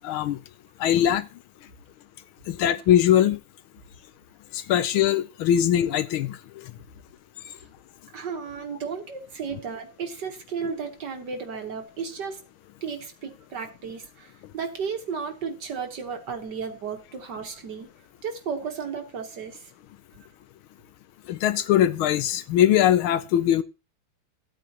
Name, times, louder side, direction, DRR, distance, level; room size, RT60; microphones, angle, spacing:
voice 1, 0.0-0.4 0.8-1.3 2.5-3.4 4.5-6.4 21.3-23.6, left 11 dB, 75° left, 1.5 m, -21 dB
voice 2, 8.1-12.4 12.8-17.9 18.2-19.7, right 6 dB, 55° right, 1.8 m, -34 dB
14.0 x 8.8 x 2.9 m
omnidirectional pair, 2.4 m